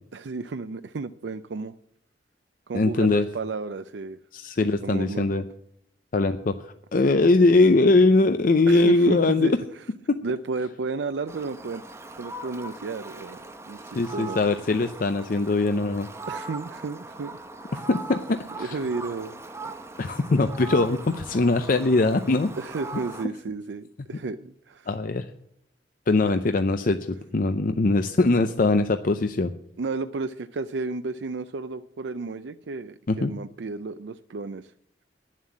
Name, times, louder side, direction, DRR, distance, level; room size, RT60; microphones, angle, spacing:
voice 1, 0.1-1.7 2.7-4.2 4.6-5.4 8.7-9.8 10.2-11.8 12.2-13.4 13.7-14.4 16.3-17.5 17.7-17.8 18.6-19.4 20.0-20.2 22.6-24.9 26.3-26.4 29.8-34.7, right 4 dB, 80° right, 10 dB, 0.5 m, -33 dB
voice 2, 2.7-3.3 4.3-5.4 6.1-9.5 10.1-10.2 13.9-16.1 17.9-18.8 20.0-22.5 24.9-25.3 26.1-29.5 33.1-33.3, left 3 dB, 50° left, 9 dB, 0.6 m, -21 dB
Fowl, 11.3-23.3, right 3 dB, 15° right, 0.9 m, -40 dB
11.0 x 7.5 x 8.4 m, 0.71 s
head